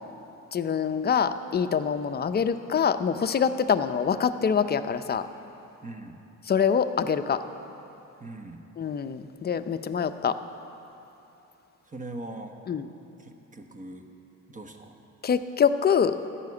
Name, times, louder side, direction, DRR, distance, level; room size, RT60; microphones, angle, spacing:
voice 1, 0.5-5.3 6.5-7.4 8.8-10.4 12.7-12.8 15.2-16.2, left 7 dB, 35° left, 10 dB, 0.5 m, -25 dB
voice 2, 5.8-6.2 8.2-8.7 11.9-12.6 13.2-14.1 14.5-15.0, right 2 dB, 25° right, 5 dB, 1.1 m, -41 dB
13.5 x 5.8 x 9.5 m, 3.0 s
cardioid pair, 90°, 30 cm